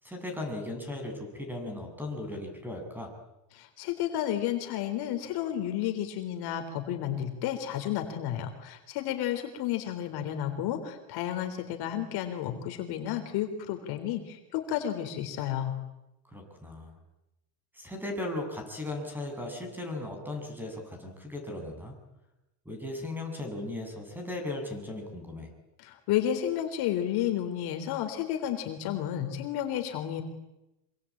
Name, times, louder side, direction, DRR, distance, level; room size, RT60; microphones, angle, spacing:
voice 1, 0.0-3.1 16.3-16.9 17.7-21.9 22.6-25.5, left 2 dB, 5° right, 4 dB, 7.8 m, -37 dB
voice 2, 3.5-15.7 25.8-30.2, left 11 dB, 50° left, 6 dB, 3.9 m, -32 dB
26.5 x 25.5 x 8.7 m, 0.91 s
supercardioid pair, 145°, 48 cm